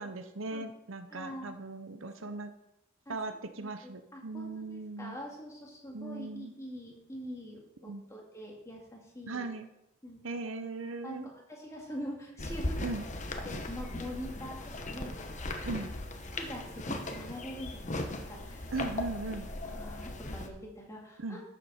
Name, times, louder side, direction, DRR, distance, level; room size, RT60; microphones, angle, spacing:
voice 1, 0.0-2.5 3.1-5.2 5.9-6.5 7.8-8.0 9.3-9.7 10.2-11.3 12.8-13.1 15.6-15.9 18.7-19.5 21.2-21.4, right 3 dB, 65° right, 8 dB, 0.8 m, -38 dB
voice 2, 1.1-1.5 2.2-2.3 3.1-9.5 10.0-10.5 11.0-12.8 13.4-15.3 15.6-15.8 16.3-18.7 19.6-21.4, equal, 15° left, -2 dB, 2.3 m, -44 dB
sound 1, 12.4-20.5, left 2 dB, 35° left, 1.0 m, -38 dB
12.0 x 7.4 x 4.3 m, 0.87 s
head